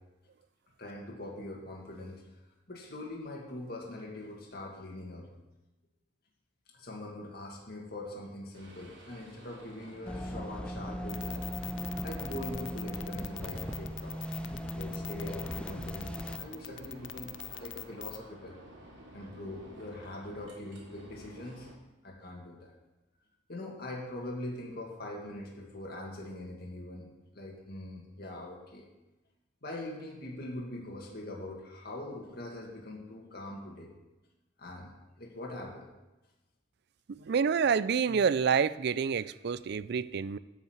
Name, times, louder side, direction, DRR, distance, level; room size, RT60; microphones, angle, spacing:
voice 1, 0.8-2.3 2.7-5.3 6.7-11.4 12.0-14.2 14.7-18.6 19.1-21.7 22.0-22.7 23.5-28.9 29.6-33.9 34.6-34.9 35.2-35.9, left 1 dB, 55° left, -2 dB, 2.1 m, -42 dB
sound 1, 8.5-21.7, right 1 dB, 80° right, 2.9 m, -52 dB
sound 2, 10.1-16.4, equal, 5° left, 0.5 m, -38 dB
sound 3, 11.1-18.2, left 12 dB, 80° left, 0.6 m, -42 dB
voice 2, 37.1-40.4, right 6 dB, 60° right, 17 dB, 0.4 m, -28 dB
11.5 x 5.7 x 8.0 m, 1.0 s
head